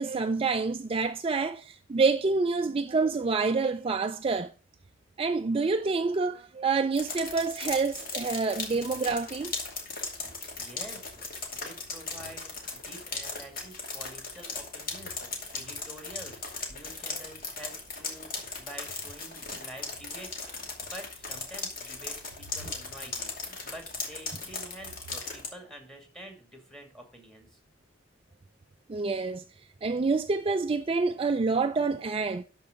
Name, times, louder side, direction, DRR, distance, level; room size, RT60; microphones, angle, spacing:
voice 1, 0.0-4.5 5.2-9.6 28.9-29.4 29.8-32.4, right 4 dB, 30° right, 0.4 m, -27 dB
sound 1, 6.9-25.5, left 3 dB, 50° left, 2.6 m, -38 dB
voice 2, 10.2-27.6, right 1 dB, ahead, 2.4 m, -48 dB
12.5 x 4.7 x 5.2 m
head